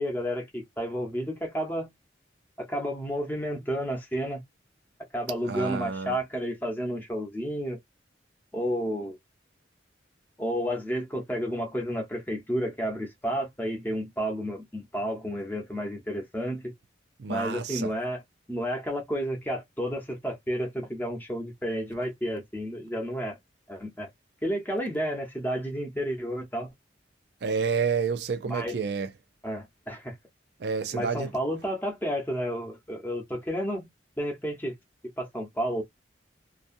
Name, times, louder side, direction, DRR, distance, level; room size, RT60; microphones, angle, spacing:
voice 1, 0.0-1.9 2.6-4.4 5.1-7.8 8.5-9.2 10.4-16.7 17.3-18.2 18.5-23.4 23.7-24.1 24.4-26.7 28.5-28.8 29.4-30.1 30.9-33.9 34.2-34.7 35.2-35.8, equal, 10° left, 0.9 m, -31 dB
voice 2, 5.5-6.2 17.2-17.9 27.4-29.1 30.6-31.3, right 5 dB, 60° right, 0.4 m, -29 dB
2.6 x 2.3 x 2.5 m
head